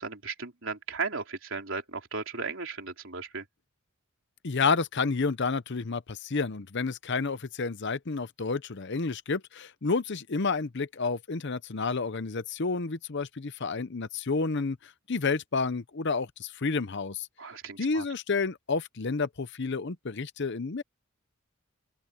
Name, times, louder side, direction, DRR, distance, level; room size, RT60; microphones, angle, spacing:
voice 1, 0.0-3.5 17.4-18.1, right 4 dB, 60° right, 4.0 m, -36 dB
voice 2, 4.4-17.3 17.8-20.8, left 4 dB, 55° left, 0.7 m, -30 dB
open air
head